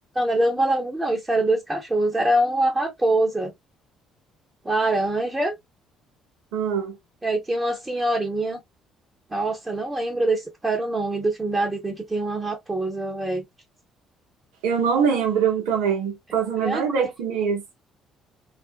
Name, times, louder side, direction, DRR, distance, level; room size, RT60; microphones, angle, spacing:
voice 1, 0.2-3.5 4.6-5.5 7.2-8.6 9.3-13.4 16.6-16.8, right 1 dB, 20° right, 0.8 m, -24 dB
voice 2, 6.5-7.0 14.6-17.6, right 7 dB, 80° right, 0.9 m, -23 dB
2.5 x 2.1 x 2.3 m
hypercardioid pair, 60°, 0 cm